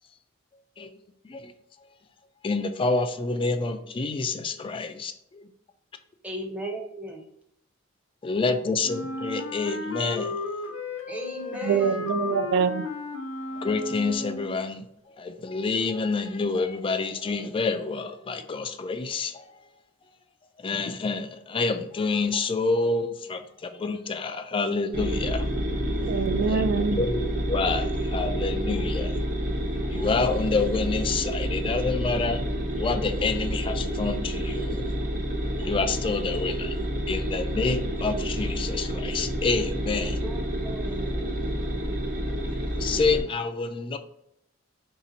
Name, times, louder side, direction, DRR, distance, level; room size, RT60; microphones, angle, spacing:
voice 1, 2.4-5.1 8.2-10.4 13.6-14.9 15.2-19.6 20.6-25.5 26.5-26.6 26.9-29.2 29.9-32.4 32.8-34.9 35.6-36.8 37.1-40.2 42.8-44.0, left 4 dB, 25° left, 8 dB, 0.3 m, -28 dB
voice 2, 6.2-7.3 11.1-12.1 39.9-41.7, right 1 dB, 5° right, 1 dB, 0.6 m, -37 dB
Wind instrument woodwind instrument, 8.8-14.6, left 3 dB, 70° left, 0.6 m, -34 dB
voice 3, 11.6-12.9 26.1-27.0, right 6 dB, 60° right, 11 dB, 0.3 m, -25 dB
sound 1, 24.9-43.2, equal, 45° right, 0.8 m, -29 dB
3.2 x 2.8 x 3.9 m, 0.75 s
head